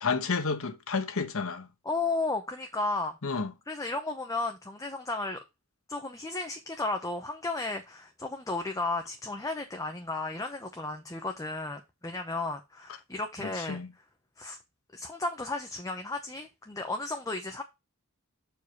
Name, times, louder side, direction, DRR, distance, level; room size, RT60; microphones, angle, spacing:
voice 1, 0.0-1.7 3.2-3.5 13.6-13.9, left 4 dB, 70° left, 1.1 m, -30 dB
voice 2, 1.8-3.4 3.7-5.4 5.9-13.8 14.4-14.6 14.9-17.6, left 3 dB, 15° left, 0.8 m, -34 dB
6.9 x 4.8 x 4.6 m
head